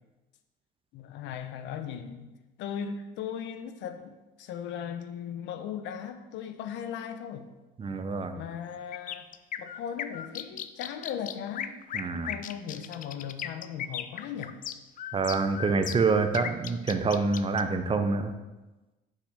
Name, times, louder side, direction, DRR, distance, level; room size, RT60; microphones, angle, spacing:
voice 1, 0.9-2.3 2.6-7.5 8.3-9.3 9.6-11.8 12.3-14.6, left 8 dB, 70° left, 9 dB, 0.9 m, -38 dB
voice 2, 7.8-8.4 11.9-12.3 15.1-18.3, right 4 dB, 25° right, 8 dB, 0.8 m, -26 dB
sound 1, 8.9-17.6, left 9 dB, 45° left, 0.5 m, -37 dB
6.5 x 5.7 x 6.5 m, 1.1 s
cardioid pair, 105°, 20 cm